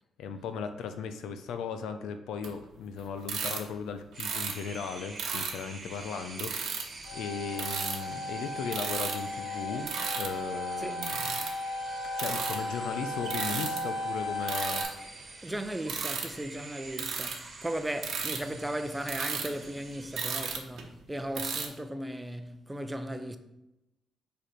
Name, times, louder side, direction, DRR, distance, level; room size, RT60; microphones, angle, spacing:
voice 1, 0.2-9.9 10.2-11.3 12.2-14.9, left 6 dB, 85° left, 0.6 m, -37 dB
sound 1, 2.4-2.5 3.2-3.6 4.2-4.5 5.2-5.5 6.4-7.1 7.5-8.1 8.7-9.2 9.8-10.4 10.9-11.5 12.2-12.7 13.2-13.8 14.4-14.9 15.8-16.3 17.0-17.4 18.0-18.4 19.0-21.0 21.3-21.7, right 6 dB, 70° right, 1.0 m, -34 dB
sound 2, 4.1-20.6, right 3 dB, 35° right, 1.2 m, -47 dB
sound 3, 7.0-14.8, left 1 dB, 55° left, 1.5 m, -36 dB
voice 2, 15.4-23.4, right 1 dB, 10° right, 0.6 m, -36 dB
5.1 x 4.9 x 4.4 m
cardioid pair, 90°, 0 cm